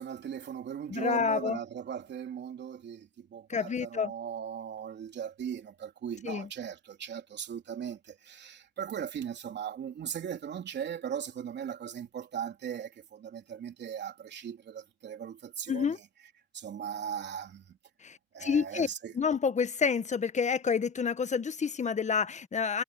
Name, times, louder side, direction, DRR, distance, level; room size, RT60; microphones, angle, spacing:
voice 1, 0.0-16.1 16.5-17.8 18.3-19.1, right 8 dB, 60° right, 3.4 m, -38 dB
voice 2, 0.9-1.6 3.5-4.1 6.2-6.5 15.7-16.0 18.0-18.9 19.1-22.8, left 6 dB, 35° left, 1.4 m, -29 dB
cardioid pair, 90°, 20 cm